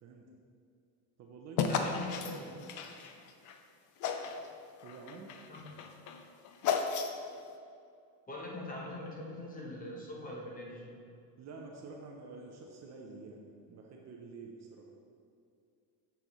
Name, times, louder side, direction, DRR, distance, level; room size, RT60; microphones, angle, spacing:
voice 1, 0.0-0.3 1.2-2.1 4.8-5.3 11.4-14.9, right 4 dB, 35° right, 0 dB, 0.6 m, -48 dB
sound 1, 1.6-3.6 4.0-4.5 4.8-7.4, left 6 dB, 45° left, 0.5 m, -34 dB
voice 2, 1.6-2.6 5.5-5.6 8.3-11.0, left 2 dB, 20° left, -2 dB, 0.9 m, -42 dB
7.5 x 7.0 x 3.1 m, 2.4 s
cardioid pair, 165°, 45 cm